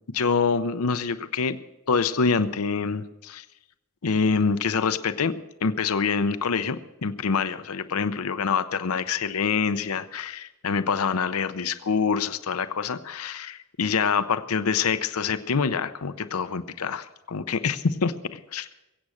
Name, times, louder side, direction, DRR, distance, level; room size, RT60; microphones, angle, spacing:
voice 1, 0.1-1.6 1.9-3.4 4.0-5.3 5.6-18.7, left 5 dB, 85° left, 12 dB, 0.7 m, -26 dB
22.0 x 8.5 x 6.4 m, 0.95 s
head